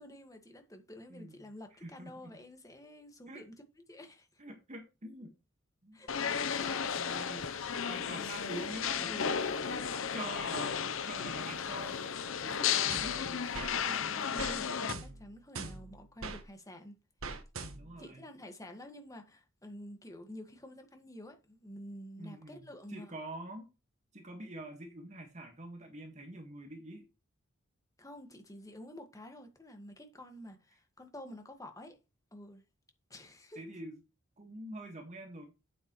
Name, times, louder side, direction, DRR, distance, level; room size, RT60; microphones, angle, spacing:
voice 1, 0.0-3.6 3.9-4.4 5.9-8.1 8.9-10.1 13.7-16.9 18.0-23.1 28.0-32.0 32.3-32.6 33.1-33.6, left 1 dB, 15° left, 1.7 m, -49 dB
voice 2, 1.1-1.4 1.8-2.4 3.3-3.4 4.4-5.3 5.8-6.0 7.0-7.5 7.9-9.3 10.1-12.0 12.4-13.9 17.7-18.2 22.2-23.7 24.1-27.1 33.5-34.0 34.4-35.5, right 1 dB, 35° right, 1.7 m, -46 dB
sound 1, 6.1-14.9, left 7 dB, 70° left, 0.8 m, -34 dB
sound 2, 12.9-13.8 14.4-14.6 14.9-16.4 17.2-18.0, right 3 dB, 80° right, 1.4 m, -42 dB
9.0 x 8.4 x 3.1 m
head